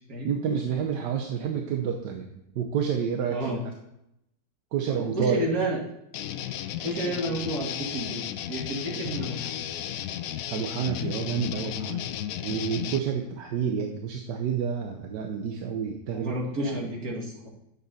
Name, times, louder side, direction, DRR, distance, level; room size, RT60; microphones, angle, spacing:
voice 1, 0.2-3.6 4.7-5.4 10.5-12.0 12.4-16.3 16.6-16.8, right 7 dB, 75° right, 3 dB, 1.4 m, -29 dB
voice 2, 3.3-3.6 5.0-5.8 6.8-8.2 8.5-9.6 16.1-17.5, right 1 dB, 55° right, -2 dB, 2.5 m, -30 dB
sound 1, 6.1-13.0, left 11 dB, 70° left, 0.8 m, -34 dB
9.7 x 7.2 x 4.1 m, 0.80 s
omnidirectional pair, 1.9 m